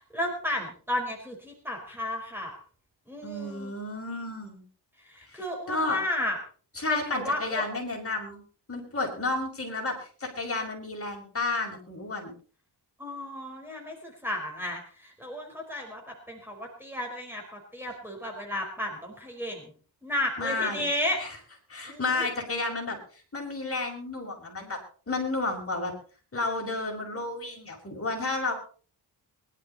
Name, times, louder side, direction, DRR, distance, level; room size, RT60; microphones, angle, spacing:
voice 1, 0.0-2.6 3.1-3.7 5.1-6.4 6.9-7.6 13.0-19.7 20.0-21.2 21.9-22.3, left 1 dB, 5° right, 1 dB, 4.6 m, -33 dB
voice 2, 3.2-4.6 5.3-6.0 6.8-8.4 8.7-12.3 20.4-20.8 21.2-21.4 21.7-24.8 25.1-25.9 26.3-28.5, left 3 dB, 35° left, 1 dB, 5.8 m, -32 dB
22.5 x 12.0 x 4.2 m, 0.42 s
wide cardioid pair, 125°, 41 cm